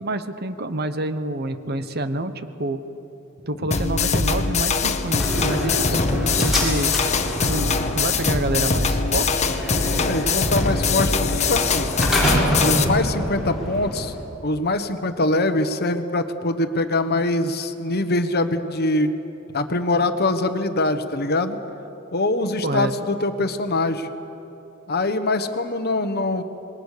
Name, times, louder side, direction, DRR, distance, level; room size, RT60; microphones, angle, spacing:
voice 1, 0.0-2.8 3.5-6.9 7.5-9.4 22.6-22.9, right 2 dB, 50° right, 11 dB, 1.1 m, -28 dB
sound 1, 3.7-12.8, left 4 dB, 35° left, 1.1 m, -22 dB
Slam, 5.2-14.2, equal, ahead, 6.7 m, -27 dB
voice 2, 5.6-6.0 10.0-11.9 12.6-14.1 14.4-19.1 19.5-21.6 22.1-24.1 24.9-26.4, left 2 dB, 50° left, 9 dB, 1.3 m, -23 dB
27.0 x 21.5 x 6.7 m, 3.0 s
head